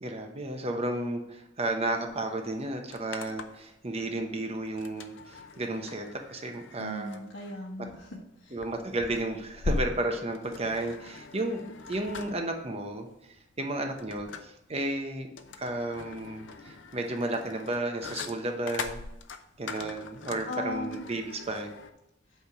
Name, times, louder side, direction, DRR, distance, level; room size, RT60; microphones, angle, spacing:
voice 1, 0.0-7.2 8.5-13.1 13.6-15.3 15.6-19.0 19.6-21.7, right 2 dB, 30° right, 4 dB, 0.9 m, -33 dB
sound 1, 2.1-2.2 2.4-3.7 4.8-21.9, left 3 dB, 65° left, 0.6 m, -41 dB
voice 2, 6.8-8.6 20.5-21.0, left 1 dB, 85° left, -1 dB, 1.2 m, -38 dB
8.3 x 3.4 x 5.9 m, 0.84 s
head